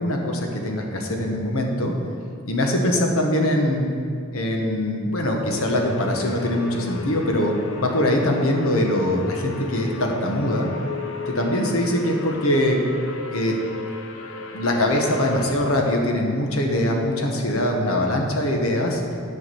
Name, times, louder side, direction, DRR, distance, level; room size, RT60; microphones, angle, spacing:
voice 1, 0.0-1.9 2.5-3.9 4.3-10.7 11.3-12.8 13.3-13.6 14.5-19.0, left 1 dB, 85° left, 2 dB, 1.4 m, -22 dB
sound 1, 5.7-15.5, left 4 dB, 65° left, 0.8 m, -35 dB
9.6 x 5.0 x 7.7 m, 2.4 s
head